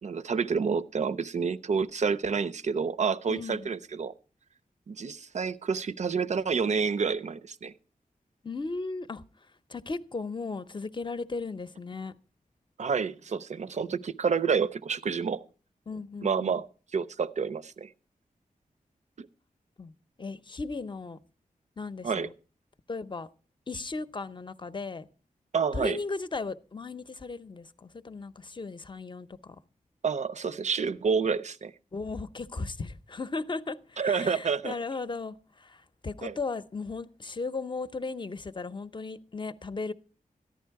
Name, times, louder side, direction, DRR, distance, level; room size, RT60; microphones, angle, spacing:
voice 1, 0.0-4.1 4.9-7.7 12.8-15.4 16.2-16.6 16.9-17.9 19.2-19.3 22.0-22.3 25.5-26.0 30.0-31.7 34.0-34.7 36.2-36.3, right 5 dB, 55° right, 0.5 m, -29 dB
voice 2, 3.3-3.7 8.4-9.2 9.7-12.1 15.9-16.6 19.8-19.9 20.2-21.2 21.8-22.3 22.9-23.3 23.7-25.1 25.7-29.6 31.9-39.9, left 3 dB, 35° left, 0.7 m, -36 dB
14.0 x 10.5 x 4.6 m
wide cardioid pair, 120°, 14 cm